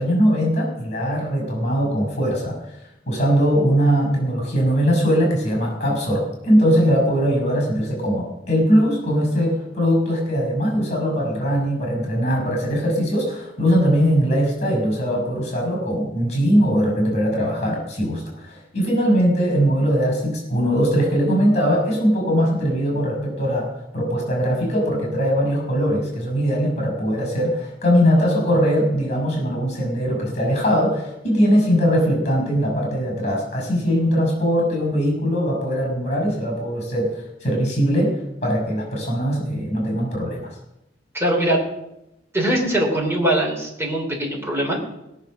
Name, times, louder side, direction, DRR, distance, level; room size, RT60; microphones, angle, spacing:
voice 1, 0.0-2.6 3.1-37.1 37.4-38.1 38.4-40.5, equal, 40° left, 0 dB, 6.3 m, -20 dB
voice 2, 41.1-41.6 42.3-44.8, right 1 dB, 15° right, -1 dB, 3.3 m, -21 dB
20.0 x 7.0 x 6.5 m, 0.88 s
head